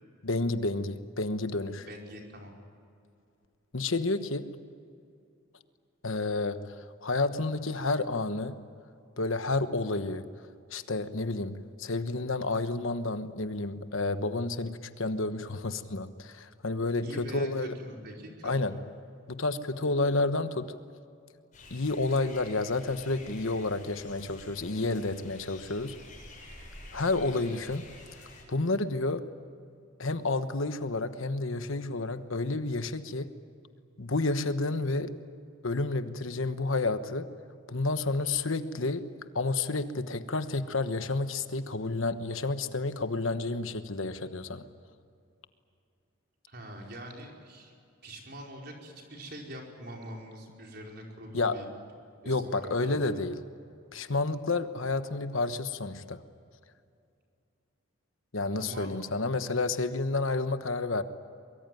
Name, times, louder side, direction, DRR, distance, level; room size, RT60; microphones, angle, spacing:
voice 1, 0.2-1.9 3.7-4.6 6.0-8.6 9.2-10.3 10.7-17.8 18.4-18.8 19.3-20.7 21.7-26.0 26.9-27.8 28.5-29.3 30.0-33.3 34.0-35.2 35.6-37.3 37.7-39.1 39.3-44.7 51.3-51.6 52.3-53.3 53.9-56.2 58.3-61.0, left 3 dB, 70° left, 10 dB, 1.2 m, -30 dB
voice 2, 1.8-2.5 17.0-18.8 46.5-47.7 48.0-51.7 52.2-53.2 58.6-58.9, equal, 50° right, 0 dB, 5.0 m, -44 dB
sound 1, 21.5-28.4, left 2 dB, 35° left, 7.7 m, -49 dB
23.5 x 23.0 x 9.3 m, 2.4 s
head